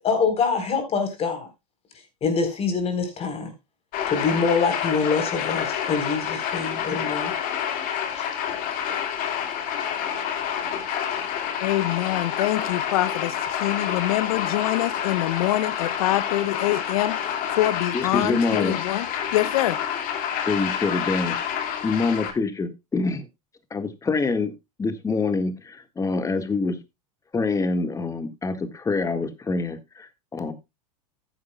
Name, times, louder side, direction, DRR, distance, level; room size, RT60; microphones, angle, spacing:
voice 1, 0.0-1.5 2.2-3.5 4.1-7.3 8.1-8.2, left 5 dB, 35° left, 4.1 m, -25 dB
sound 1, 3.9-22.3, left 9 dB, 50° left, 2.3 m, -28 dB
voice 2, 11.6-19.8, left 15 dB, 70° left, 0.7 m, -25 dB
voice 3, 17.9-18.8 20.4-21.4 21.8-23.3 23.7-24.5 24.8-26.8 27.3-30.5, left 3 dB, 15° left, 1.8 m, -25 dB
14.0 x 10.0 x 2.3 m
hypercardioid pair, 105°, 19 cm